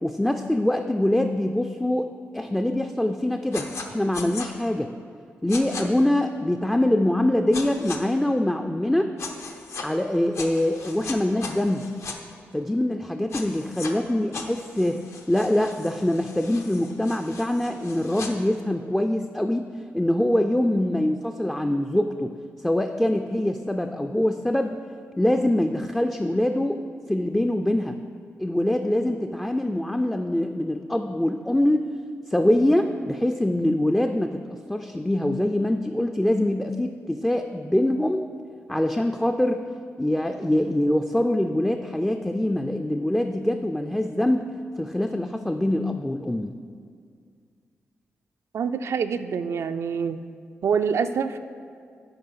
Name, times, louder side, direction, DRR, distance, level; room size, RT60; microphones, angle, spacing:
voice 1, 0.0-2.1 2.3-4.9 5.4-9.1 9.8-11.8 12.5-15.0 15.3-19.7 19.9-22.4 22.6-24.8 25.2-26.8 27.1-28.0 28.4-31.9 32.3-38.2 38.7-39.6 40.0-44.5 44.8-46.6, left 1 dB, 10° left, 5 dB, 0.3 m, -24 dB
sound 1, 3.5-3.9 4.1-4.5 5.5-5.8 7.5-8.0 9.2-9.9 10.3-12.2 13.3-13.9 14.3-18.3, left 4 dB, 70° left, 0.7 m, -38 dB
voice 2, 48.5-50.2 50.6-51.4, right 6 dB, 70° right, 9 dB, 0.3 m, -26 dB
7.9 x 4.7 x 5.6 m, 2.2 s
cardioid pair, 75°, 5 cm